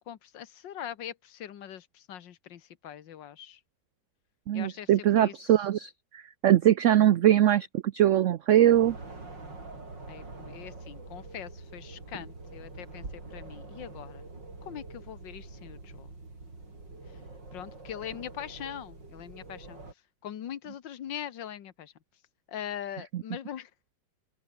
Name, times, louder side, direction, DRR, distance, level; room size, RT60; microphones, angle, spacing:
voice 1, 0.0-3.6 4.5-5.3 10.1-14.3 14.6-16.1 17.5-19.8 20.2-21.9 22.5-23.7, left 10 dB, 85° left, 1.9 m, -41 dB
voice 2, 4.5-9.0 23.1-23.2, right 11 dB, 65° right, 0.8 m, -22 dB
sound 1, 8.7-19.9, right 3 dB, 85° right, 6.2 m, -45 dB
open air
omnidirectional pair, 1.9 m